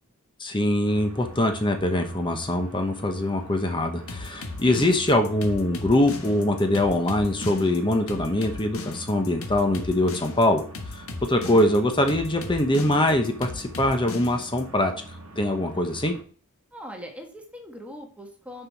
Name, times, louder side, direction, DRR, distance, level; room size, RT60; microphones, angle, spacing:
voice 1, 0.4-10.6 10.9-14.9 15.4-16.1, left 1 dB, 20° left, 5 dB, 0.9 m, -23 dB
sound 1, 0.9-16.2, right 1 dB, 70° right, 1.0 m, -43 dB
sound 2, 4.1-14.6, left 3 dB, 65° left, 1.3 m, -36 dB
voice 2, 16.7-18.7, equal, 5° right, 3 dB, 1.3 m, -41 dB
6.6 x 5.7 x 4.6 m, 0.43 s
head